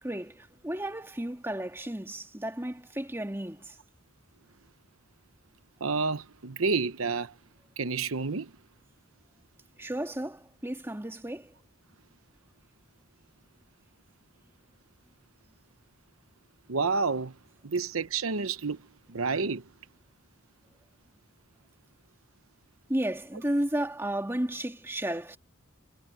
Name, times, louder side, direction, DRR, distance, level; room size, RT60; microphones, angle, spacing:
voice 1, 0.0-3.8 9.8-11.5 22.9-25.4, right 1 dB, 10° right, 2.2 m, -33 dB
voice 2, 5.8-7.3 7.8-8.5 16.7-17.3 17.6-18.8 19.1-19.6, right 4 dB, 85° right, 0.9 m, -29 dB
head